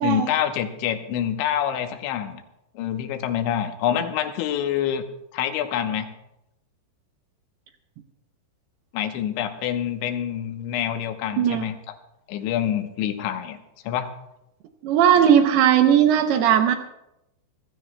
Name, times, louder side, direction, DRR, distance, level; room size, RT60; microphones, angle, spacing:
voice 1, 0.0-2.4 2.8-5.0 5.3-6.1 8.9-11.8 12.3-13.6 13.8-14.1, left 10 dB, 85° left, 7 dB, 3.3 m, -26 dB
voice 2, 14.8-16.7, right 9 dB, 75° right, 6 dB, 2.5 m, -17 dB
25.5 x 15.0 x 2.2 m, 0.86 s
omnidirectional pair, 5.2 m